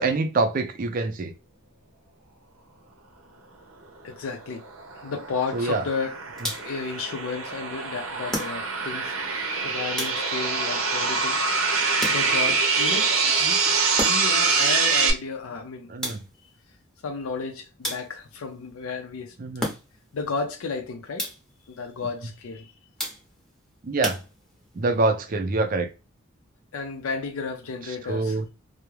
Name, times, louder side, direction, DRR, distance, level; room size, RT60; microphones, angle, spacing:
voice 1, 0.0-1.3 5.5-5.8 15.9-16.2 19.4-19.7 23.8-24.2 24.8-25.9 28.1-28.4, right 3 dB, 40° right, 0.4 m, -25 dB
voice 2, 4.0-4.7 5.0-6.2 6.6-9.2 9.6-11.8 12.1-15.9 17.0-19.4 20.1-21.3 21.7-22.7 26.7-28.4, left 4 dB, 80° left, 0.4 m, -33 dB
sound 1, 4.3-15.1, right 4 dB, 85° right, 0.6 m, -25 dB
sound 2, 6.4-6.9 8.3-9.0 10.0-10.6 12.0-12.6 14.0-14.5 16.0-16.5 17.8-18.4 19.6-20.2 21.2-21.6 23.0-23.5 24.0-24.8, equal, 5° left, 0.7 m, -34 dB
2.3 x 2.0 x 3.0 m
head